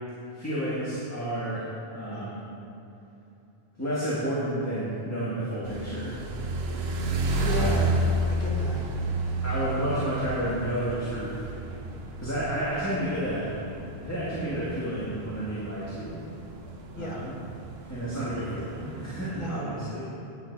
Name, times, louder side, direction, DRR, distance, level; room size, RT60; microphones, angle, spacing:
voice 1, 0.3-2.4 3.8-6.2 7.6-7.7 9.4-11.3 12.2-13.6 14.0-16.2 17.0-17.3 17.9-20.0, right 1 dB, 15° left, -10 dB, 1.9 m, -31 dB
sound 1, 5.6-19.3, right 1 dB, 75° right, 1.1 m, -31 dB
voice 2, 7.3-8.8 16.9-17.2 19.3-19.8, left 1 dB, 55° left, -3 dB, 1.7 m, -33 dB
9.4 x 9.2 x 4.7 m, 2.8 s
omnidirectional pair, 1.1 m